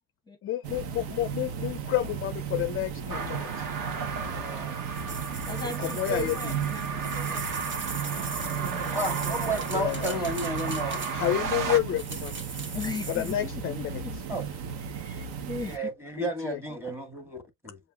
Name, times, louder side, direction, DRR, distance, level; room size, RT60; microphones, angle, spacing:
voice 1, 0.4-3.7 5.6-6.5 9.7-10.2 10.8-12.4 13.1-14.0 16.1-16.6, left 13 dB, 35° left, 0.4 m, -30 dB
sound 1, 0.6-15.8, right 7 dB, 70° right, 0.9 m, -35 dB
sound 2, 3.1-11.8, right 5 dB, 50° right, 1.2 m, -35 dB
voice 2, 4.2-4.6 5.4-10.3 12.7-14.5 14.8-15.9 16.7-17.1, left 2 dB, 10° left, 0.8 m, -40 dB
sound 3, 4.9-11.4 12.0-13.5, right 3 dB, 30° right, 1.0 m, -40 dB
voice 3, 8.9-11.0 14.3-14.5 15.7-17.8, right 1 dB, 5° right, 1.3 m, -32 dB
6.8 x 2.6 x 2.2 m
cardioid pair, 120°, 41 cm